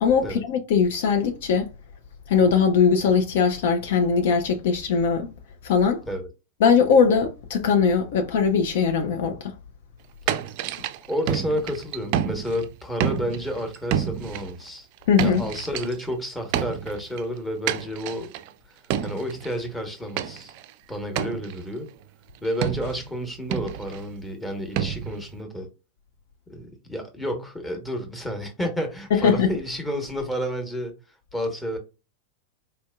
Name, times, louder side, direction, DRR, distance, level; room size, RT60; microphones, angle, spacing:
voice 1, 0.0-1.7 2.3-5.3 5.6-6.0 6.6-9.6 15.1-15.5 29.1-29.5, left 6 dB, 55° left, 0.5 m, -20 dB
sound 1, 10.3-12.7 13.0-14.5 15.0-16.0 16.5-17.2 17.7-18.5 18.9-19.6 20.2-20.7 21.2-21.6 22.6-23.2 23.5-24.1 24.8-25.4, right 10 dB, 45° right, 0.4 m, -29 dB
voice 2, 11.1-14.9 15.2-18.3 18.7-18.8 19.0-20.5 20.9-21.9 22.4-25.7 26.5-31.8, equal, 10° left, 1.0 m, -30 dB
4.2 x 2.6 x 2.2 m
figure-of-eight pair, 90°, 0 cm